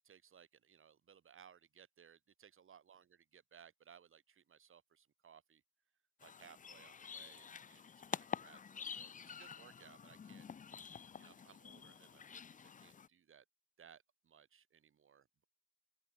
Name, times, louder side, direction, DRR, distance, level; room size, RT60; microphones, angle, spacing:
voice 1, 0.0-5.6 6.2-10.5 11.2-13.4 13.8-15.4, right 8 dB, 45° right, 1.2 m, -63 dB
sound 1, 6.2-13.1, left 6 dB, 25° left, 0.5 m, -48 dB
open air
cardioid pair, 90°, 30 cm